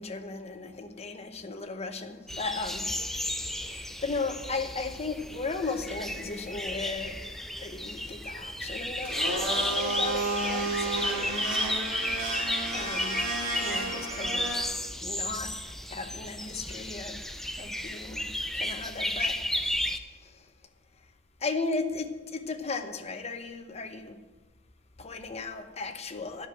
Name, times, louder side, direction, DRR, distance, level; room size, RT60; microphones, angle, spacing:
voice 1, 0.0-2.9 3.6-7.2 7.6-9.2 9.5-11.6 12.7-14.5 15.0-15.5 15.9-17.2 17.6-19.4 21.4-24.2 25.0-26.5, left 3 dB, 30° left, 0.9 m, -36 dB
sound 1, 2.3-20.0, left 1 dB, ahead, 0.5 m, -33 dB
Domestic sounds home sounds, 9.0-14.6, right 2 dB, 60° right, 3.6 m, -32 dB
10.5 x 6.3 x 8.0 m
head